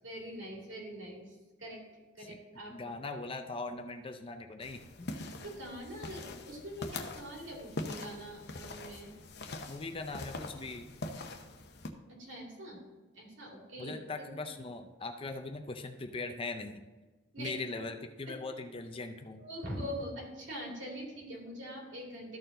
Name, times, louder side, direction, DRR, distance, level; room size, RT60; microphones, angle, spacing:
voice 1, 0.0-1.8 2.1-2.9 5.4-9.1 12.2-12.8 13.1-13.9 17.3-17.6 19.4-22.4, equal, 65° right, -2 dB, 2.5 m, -43 dB
voice 2, 2.7-5.1 9.7-10.9 13.8-16.8 17.4-19.4, left 3 dB, 25° left, 6 dB, 0.5 m, -40 dB
sound 1, 4.6-11.9, left 2 dB, 55° left, 0.8 m, -43 dB
13.0 x 4.6 x 3.8 m, 1.3 s
head